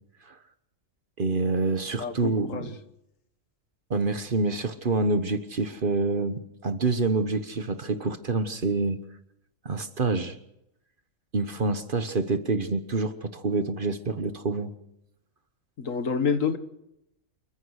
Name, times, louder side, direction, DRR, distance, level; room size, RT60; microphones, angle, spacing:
voice 1, 1.2-2.7 3.9-9.0 9.6-10.3 11.3-14.7, right 3 dB, 45° right, 10 dB, 1.2 m, -27 dB
voice 2, 2.0-2.7 15.8-16.6, left 5 dB, 75° left, 9 dB, 1.8 m, -28 dB
28.5 x 14.5 x 6.5 m, 0.84 s
omnidirectional pair, 1.4 m